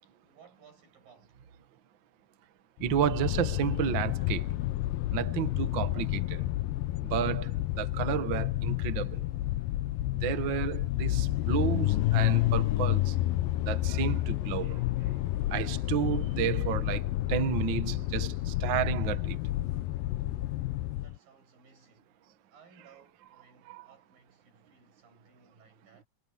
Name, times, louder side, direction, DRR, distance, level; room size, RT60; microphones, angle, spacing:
voice 1, 0.0-1.4 20.9-22.2 22.5-26.1, right 5 dB, 85° right, 9.3 m, -60 dB
sound 1, 2.8-21.2, left 15 dB, 85° left, 2.4 m, -30 dB
voice 2, 2.8-4.4 5.1-6.4 7.1-9.2 10.2-13.1 13.7-14.8 15.5-19.4 23.7-23.8, right 9 dB, 60° right, 1.2 m, -31 dB
omnidirectional pair, 3.9 m